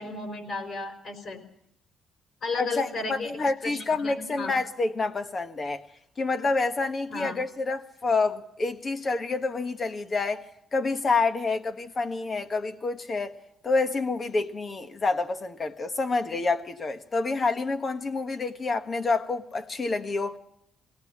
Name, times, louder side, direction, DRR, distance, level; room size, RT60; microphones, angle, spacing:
voice 1, 0.0-1.4 2.4-3.3 3.6-4.5 7.1-7.3, left 3 dB, 60° left, 4.9 m, -34 dB
voice 2, 2.6-5.8 6.2-13.3 13.6-20.4, left 3 dB, 35° left, 1.5 m, -28 dB
21.0 x 18.0 x 7.3 m
cardioid pair, 90°, 0 cm